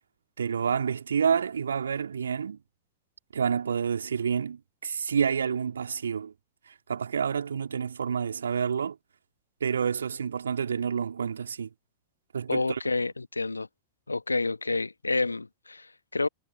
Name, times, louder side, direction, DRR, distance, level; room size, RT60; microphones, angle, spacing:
voice 1, 0.4-2.6 3.3-6.3 6.7-9.0 9.6-11.7 12.3-12.8, right 7 dB, 70° right, 3.8 m, -29 dB
voice 2, 12.5-13.7 14.1-16.3, left 3 dB, 80° left, 1.2 m, -29 dB
figure-of-eight pair, 90°, 0 cm